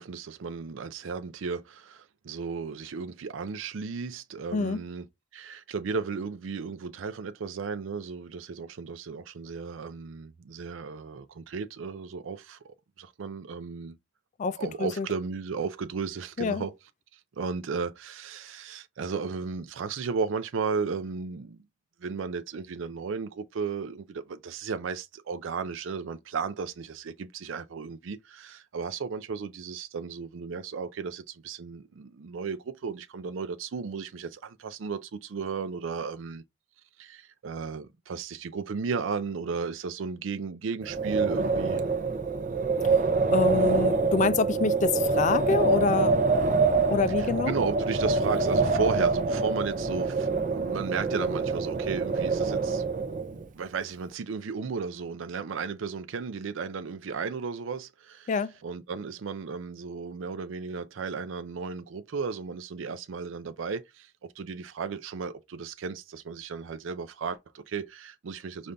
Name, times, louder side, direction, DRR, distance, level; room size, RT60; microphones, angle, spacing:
voice 1, 0.0-5.0 5.3-14.0 14.6-16.7 17.1-21.6 22.0-36.4 37.0-41.8 47.2-58.3 58.6-68.7, right 5 dB, 90° right, 0.5 m, -34 dB
voice 2, 4.5-4.8 14.4-15.1 16.4-16.6 42.7-46.3 46.9-47.5 58.3-58.5, left 4 dB, 40° left, 0.4 m, -27 dB
Wind, 40.8-53.4, right 3 dB, 45° right, 0.6 m, -26 dB
5.3 x 2.6 x 3.3 m
head